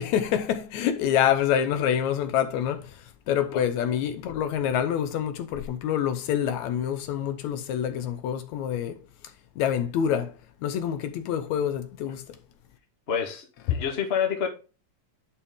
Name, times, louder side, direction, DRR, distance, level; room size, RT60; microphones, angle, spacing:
voice 1, 0.0-2.8 3.3-9.0 9.6-10.3 10.6-12.2, left 9 dB, 75° left, 1.9 m, -26 dB
voice 2, 13.1-14.5, left 7 dB, 45° left, 0.7 m, -28 dB
9.8 x 4.2 x 3.5 m
omnidirectional pair, 3.6 m